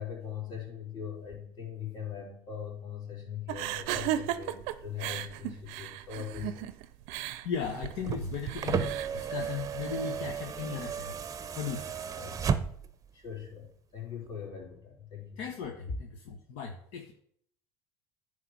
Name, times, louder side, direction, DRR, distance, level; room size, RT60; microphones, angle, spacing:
voice 1, 0.0-6.7 12.2-12.4 13.1-15.4, left 8 dB, 35° left, -2 dB, 3.9 m, -41 dB
sound 1, 3.5-10.3, right 13 dB, 70° right, 0.6 m, -36 dB
voice 2, 7.2-11.1 11.6-12.0 15.4-17.1, left 6 dB, 70° left, 2 dB, 1.1 m, -37 dB
sound 2, 7.9-13.0 14.3-14.4, right 7 dB, 30° right, 0.7 m, -34 dB
9.6 x 3.3 x 6.9 m, 0.64 s
hypercardioid pair, 85°, 12 cm